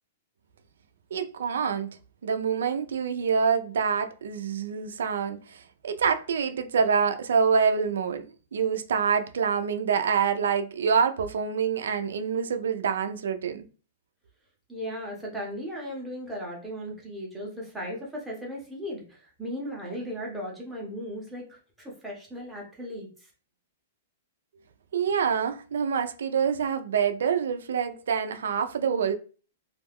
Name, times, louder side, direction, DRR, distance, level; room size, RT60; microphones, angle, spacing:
voice 1, 1.1-2.0 2.2-8.3 8.5-13.6 24.9-29.1, right 6 dB, 85° right, 0.4 m, -26 dB
voice 2, 14.7-23.3, equal, 5° right, 0.7 m, -37 dB
2.3 x 2.1 x 3.4 m
hypercardioid pair, 175°, 0 cm